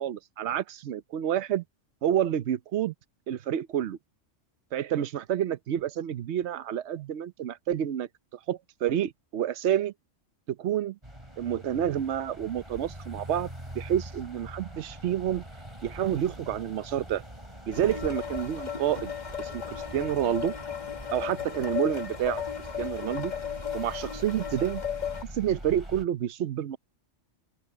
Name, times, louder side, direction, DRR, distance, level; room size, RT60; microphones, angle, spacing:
voice 1, 0.0-1.6 2.0-2.9 3.3-4.0 4.7-8.1 8.5-9.9 10.6-11.0 11.4-13.5 13.7-15.4 15.8-17.2 17.7-19.1 19.4-20.5 21.1-22.4 22.8-23.3 23.7-24.8 25.3-26.8, right 10 dB, 65° right, 1.0 m, -29 dB
sound 1, 11.0-26.1, right 1 dB, 25° right, 5.6 m, -44 dB
sound 2, 17.7-25.2, left 8 dB, 40° left, 1.3 m, -35 dB
open air
omnidirectional pair, 1.3 m